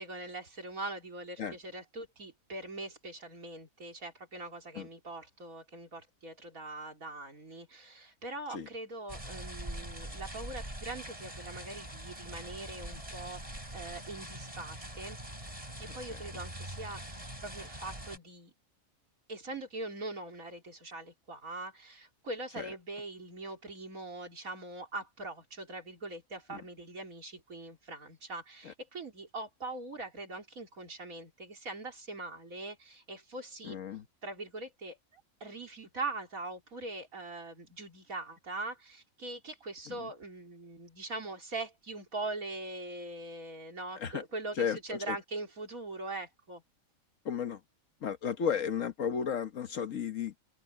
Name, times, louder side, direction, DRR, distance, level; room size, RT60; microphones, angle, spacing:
voice 1, 0.0-15.2 15.8-18.5 19.3-33.8 34.2-46.6, right 2 dB, 85° right, 4.0 m, -42 dB
sound 1, 9.1-18.2, right 1 dB, 25° right, 6.3 m, -43 dB
voice 2, 33.6-34.0 39.9-40.1 44.0-44.2 44.6-45.2 47.2-47.6 48.0-50.3, left 7 dB, 70° left, 1.4 m, -34 dB
open air
omnidirectional pair, 1.4 m